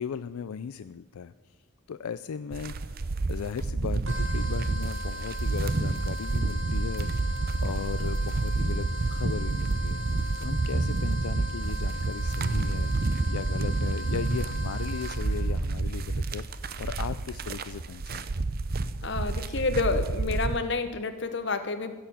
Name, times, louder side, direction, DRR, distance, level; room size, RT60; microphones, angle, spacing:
voice 1, 0.0-1.3 1.9-10.1 10.4-12.9 13.3-18.3, left 7 dB, 90° left, 14 dB, 0.4 m, -37 dB
sound 1, 2.5-20.6, right 3 dB, 45° right, 0.6 m, -29 dB
sound 2, 4.1-15.5, left 1 dB, 60° right, 2.1 m, -40 dB
voice 2, 19.0-21.9, left 3 dB, 55° left, 8 dB, 1.1 m, -29 dB
16.0 x 7.0 x 7.1 m, 1.2 s
head